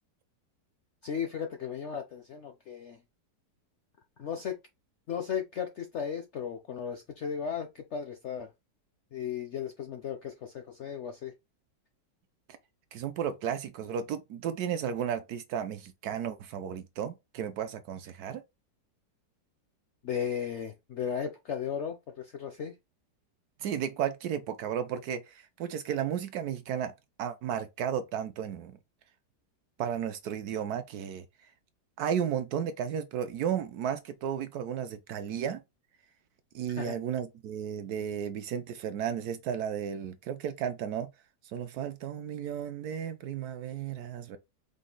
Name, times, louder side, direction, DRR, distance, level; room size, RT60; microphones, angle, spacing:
voice 1, 1.0-3.0 4.2-4.6 5.1-8.5 9.1-11.3 20.0-22.7 36.7-37.0, left 7 dB, 65° left, 0.7 m, -35 dB
voice 2, 12.9-18.4 23.6-28.8 29.8-31.2 32.0-35.6 36.5-41.1 41.5-44.4, right 8 dB, 70° right, 1.0 m, -34 dB
5.2 x 2.3 x 3.8 m
omnidirectional pair, 1.9 m